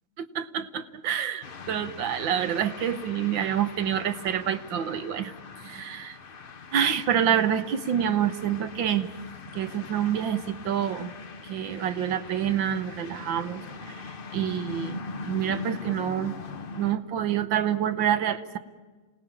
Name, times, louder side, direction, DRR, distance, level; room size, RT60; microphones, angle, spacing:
voice 1, 0.3-5.3 5.6-6.2 6.7-9.1 9.5-11.1 11.4-14.0 14.3-15.0 15.3-16.3 16.7-18.6, right 9 dB, 65° right, 10 dB, 1.6 m, -27 dB
sound 1, 1.4-16.9, left 4 dB, 60° left, 0.5 m, -41 dB
27.5 x 18.5 x 8.8 m, 1.4 s
omnidirectional pair, 2.3 m